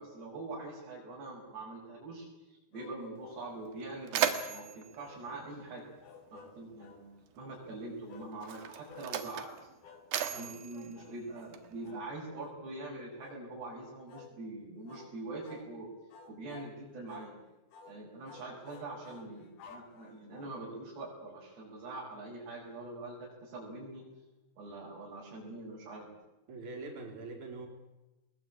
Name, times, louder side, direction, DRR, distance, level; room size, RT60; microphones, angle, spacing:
voice 1, 0.0-5.8 6.3-7.1 7.4-9.7 10.4-15.9 16.3-17.3 17.9-24.0 24.6-26.1, right 2 dB, 85° right, -5 dB, 8.3 m, -44 dB
sound 1, 2.7-3.5 4.5-5.5 6.0-7.1 8.1-8.4 8.9-9.1 9.8-10.1 10.3-10.6 10.9-11.2 11.8-12.1 12.4-12.6 13.2-13.4 14.1-14.3 14.9-15.1 15.4-15.7 16.1-16.7 17.1-17.3 17.7-18.0 18.3-20.4, left 5 dB, 70° left, 4.0 m, -54 dB
Mechanisms, 3.2-3.3 3.6-6.3 7.3-7.5 8.3-11.9, right 9 dB, 70° right, 3.3 m, -37 dB
voice 2, 26.5-27.7, right 3 dB, 50° right, 3 dB, 5.2 m, -43 dB
23.0 x 21.0 x 8.8 m, 1.0 s
omnidirectional pair, 4.7 m